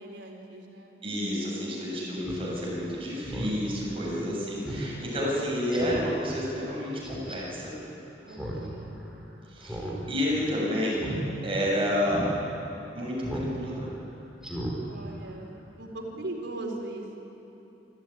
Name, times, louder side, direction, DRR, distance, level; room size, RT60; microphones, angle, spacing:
voice 1, 0.0-1.0 4.0-4.7 8.2-9.0 14.8-17.2, right 1 dB, 85° right, 0 dB, 4.0 m, -40 dB
voice 2, 1.0-7.7 9.5-11.1 11.4-12.3 12.9-13.9, equal, 30° right, -4 dB, 7.5 m, -30 dB
Speech synthesizer, 2.2-2.4 2.8-2.9 3.2-3.6 4.0-4.1 4.6-4.8 5.2-5.3 5.7-6.1 7.0-7.4 8.3-8.7 8.9-9.0 9.6-10.0 10.2-10.5 10.9-11.2 11.6-11.7 12.1-12.3 13.2-13.5 13.8-14.0 14.4-14.7 15.1-15.2, equal, 5° right, 4.6 m, -35 dB
27.5 x 14.0 x 9.8 m, 3.0 s
head